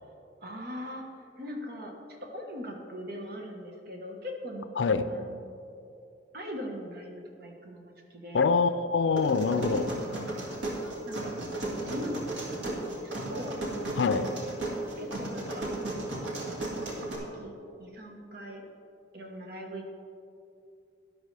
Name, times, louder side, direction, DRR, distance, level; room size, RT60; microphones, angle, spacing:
voice 1, 0.4-1.0 1.4-1.9 2.3-4.9 5.1-5.5 6.3-7.8 8.1-8.5 11.1-13.5 15.0-15.7 16.3-16.9 17.3-17.5 17.8-18.6 19.1-19.9, equal, 60° right, 2 dB, 1.3 m, -40 dB
voice 2, 4.8-5.1 8.3-10.0 14.0-14.3, left 4 dB, 85° left, 11 dB, 0.5 m, -25 dB
sound 1, 9.2-17.2, right 1 dB, 80° right, 2.2 m, -35 dB
12.0 x 11.0 x 3.3 m, 2.6 s
head